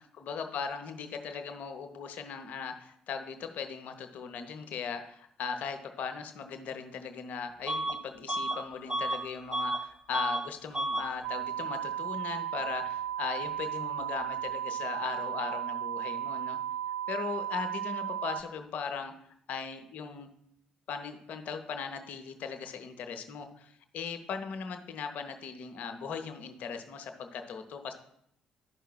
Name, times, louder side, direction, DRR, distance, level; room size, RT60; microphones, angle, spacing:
voice 1, 0.0-16.6 17.1-19.1 19.5-20.3 20.9-27.9, left 6 dB, 55° left, 6 dB, 0.7 m, -38 dB
Bus / Alarm, 7.7-8.0 8.3-9.8 10.1-10.5 10.7-11.1, right 1 dB, 30° right, 1.0 m, -32 dB
sound 1, 11.2-18.4, right 10 dB, 70° right, 0.6 m, -35 dB
12.0 x 5.5 x 2.2 m, 0.71 s
figure-of-eight pair, 45°, 3 cm